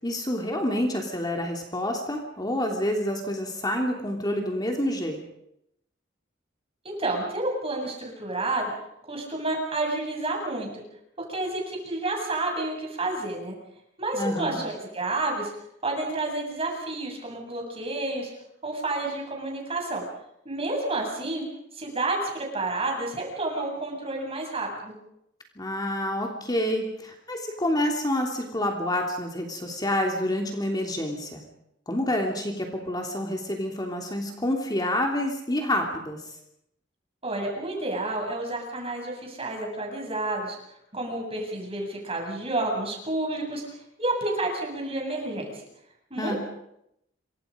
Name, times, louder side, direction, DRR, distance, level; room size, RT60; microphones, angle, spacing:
voice 1, 0.0-5.2 14.1-14.6 25.6-31.4 31.9-36.2 46.2-46.4, left 1 dB, 20° left, 2 dB, 3.1 m, -28 dB
voice 2, 6.8-8.7 9.1-10.8 11.3-13.5 14.0-15.5 15.8-18.3 18.6-20.0 20.4-21.4 21.8-24.9 37.2-40.6 40.9-43.6 44.0-45.5 46.1-46.4, right 2 dB, 30° right, 1 dB, 7.9 m, -30 dB
28.0 x 24.5 x 5.2 m, 0.78 s
head